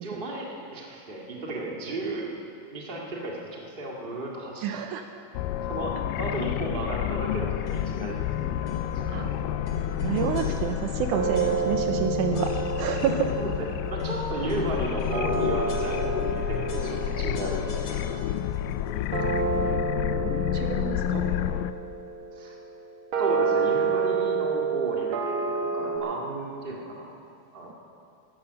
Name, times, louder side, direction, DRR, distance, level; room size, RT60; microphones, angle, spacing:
voice 1, 0.0-2.4 2.7-4.7 5.7-8.7 13.4-13.5 13.9-16.3 16.6-18.2 21.1-21.3 22.3-22.5 23.2-27.1 27.5-27.7, right 2 dB, 20° right, -2 dB, 1.5 m, -34 dB
voice 2, 4.6-5.2 9.1-9.3 10.0-13.3 19.3-19.9 20.2-21.2, right 7 dB, 80° right, 6 dB, 2.0 m, -30 dB
sound 1, 5.3-21.7, left 12 dB, 85° left, 2.2 m, -30 dB
sound 2, 7.7-8.1 8.7-9.0 9.6-11.0 11.3-12.0 12.3-13.4 14.0-16.4 16.7-18.6, left 4 dB, 55° left, 1.9 m, -39 dB
sound 3, 9.0-10.3 11.1-26.0, right 5 dB, 60° right, 1.5 m, -30 dB
15.0 x 11.5 x 6.7 m, 2.5 s
omnidirectional pair, 3.8 m